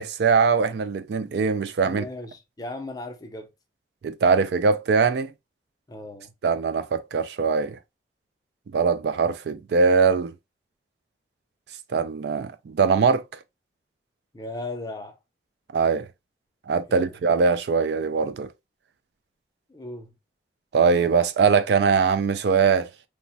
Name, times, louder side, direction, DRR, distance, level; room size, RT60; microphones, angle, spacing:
voice 1, 0.0-2.0 4.0-5.3 6.4-7.8 8.7-10.3 11.9-13.2 15.7-16.0 16.7-18.5 20.7-22.9, right 5 dB, 65° right, 0.3 m, -21 dB
voice 2, 1.8-3.5 5.9-6.3 14.3-15.2 16.9-17.1 19.7-20.1, left 2 dB, 20° left, 0.5 m, -37 dB
3.2 x 2.1 x 2.5 m
head